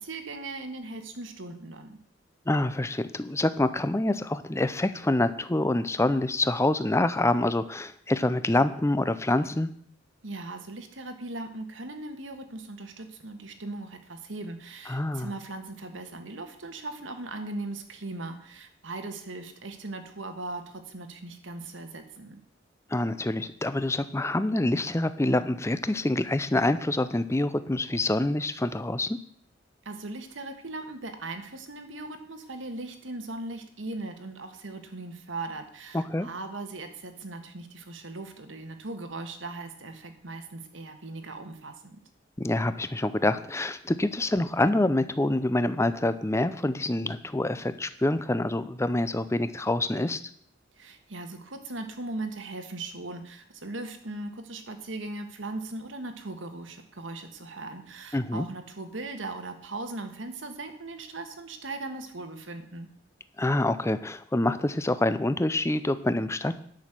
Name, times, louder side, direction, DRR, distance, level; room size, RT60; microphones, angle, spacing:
voice 1, 0.0-2.0 10.2-22.4 29.8-42.0 50.8-62.9, right 2 dB, 75° right, 7 dB, 1.5 m, -39 dB
voice 2, 2.5-9.7 14.9-15.3 22.9-29.2 35.9-36.3 42.4-50.2 58.1-58.5 63.4-66.6, left 1 dB, 15° left, 13 dB, 0.6 m, -26 dB
10.5 x 6.3 x 7.5 m, 0.63 s
head